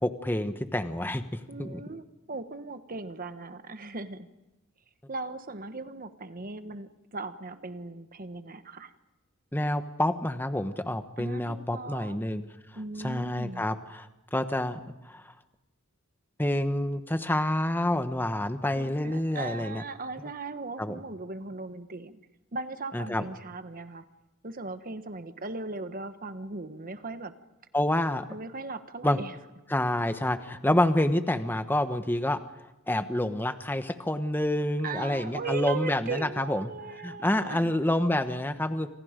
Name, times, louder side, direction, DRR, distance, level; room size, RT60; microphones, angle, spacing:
voice 1, 0.0-1.8 9.5-12.4 13.0-14.8 15.0-15.2 16.4-19.8 20.8-21.0 22.9-23.2 27.7-28.3 29.0-29.2 29.7-32.4 32.9-36.7 37.0-38.9, left 1 dB, 10° left, 9 dB, 1.1 m, -28 dB
voice 2, 1.5-4.3 5.1-8.9 11.2-12.2 12.7-13.7 18.8-22.2 22.5-24.0 24.4-27.3 28.3-29.4 34.8-37.7, right 3 dB, 40° right, 9 dB, 1.3 m, -38 dB
29.5 x 27.0 x 5.2 m, 1.0 s
head